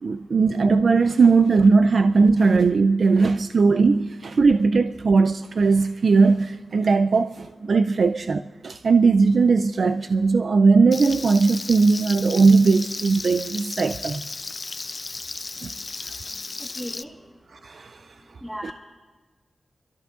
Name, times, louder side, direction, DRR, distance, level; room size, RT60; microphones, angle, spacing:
voice 1, 0.0-14.2 15.6-15.7 17.6-18.0 18.6-18.7, right 4 dB, 60° right, 0.3 m, -19 dB
Frying (food), 10.9-17.0, left 3 dB, 35° left, 0.4 m, -34 dB
voice 2, 16.8-17.1 18.4-18.7, equal, ahead, 1.4 m, -34 dB
26.0 x 13.5 x 2.5 m
wide cardioid pair, 125°, 0 cm